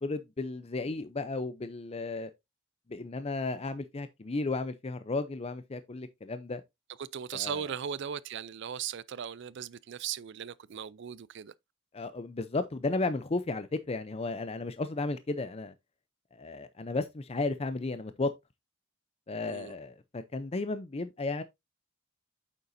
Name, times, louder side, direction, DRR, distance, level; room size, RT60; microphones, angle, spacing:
voice 1, 0.0-2.3 2.9-6.6 7.3-7.7 11.9-15.7 16.3-18.3 19.3-21.4, left 3 dB, 30° left, 0.5 m, -34 dB
voice 2, 7.0-11.5 19.4-19.7, right 8 dB, 60° right, 0.4 m, -38 dB
9.0 x 6.8 x 2.6 m
head